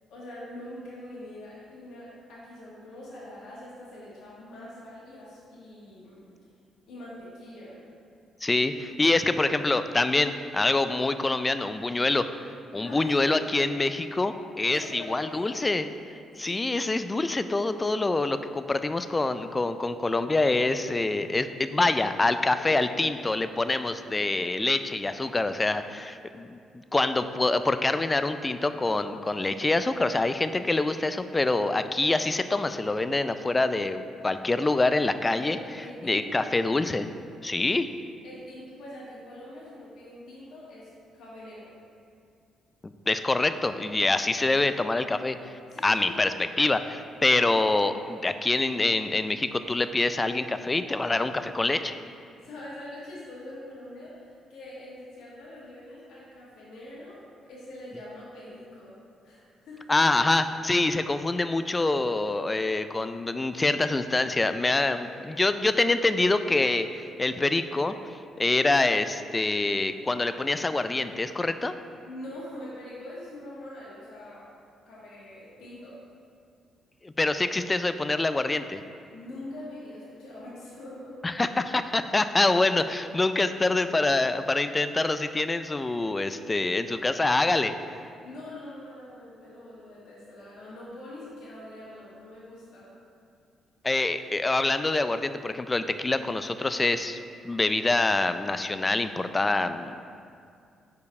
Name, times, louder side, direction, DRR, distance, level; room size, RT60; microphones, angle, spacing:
voice 1, 0.1-6.2 6.9-7.8 12.8-13.1 14.6-15.6 16.4-16.6 22.6-22.8 35.3-36.4 38.2-41.7 45.7-46.2 52.4-59.0 59.2-59.8 65.0-65.1 72.0-74.5 74.9-76.0 79.1-81.2 86.6-86.7 88.2-93.0, left 1 dB, 80° left, -7 dB, 1.6 m, -43 dB
voice 2, 8.4-12.3 12.7-15.9 16.4-35.6 36.0-37.1 37.4-37.9 43.1-45.5 45.8-46.3 46.6-52.0 59.9-65.1 65.4-67.9 68.4-71.7 77.0-78.8 81.2-87.7 93.8-97.2 97.4-100.0, left 2 dB, 20° left, 10 dB, 0.3 m, -25 dB
5.2 x 4.7 x 4.7 m, 2.4 s
cardioid pair, 90°, 0 cm